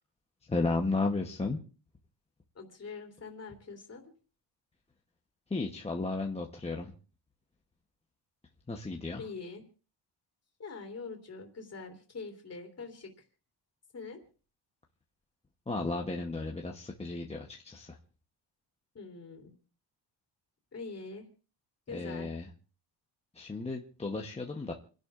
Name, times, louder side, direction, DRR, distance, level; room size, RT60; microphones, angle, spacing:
voice 1, 0.5-1.6 5.5-6.9 8.7-9.2 15.7-18.0 21.9-22.5 23.3-24.7, left 3 dB, 15° left, 1 dB, 0.9 m, -34 dB
voice 2, 2.5-4.1 9.2-9.6 10.6-13.2 13.9-14.2 18.9-19.5 20.7-21.2 21.9-22.3, left 4 dB, 30° left, 3 dB, 3.1 m, -44 dB
29.0 x 11.0 x 2.5 m, 0.38 s
cardioid pair, 140°, 47 cm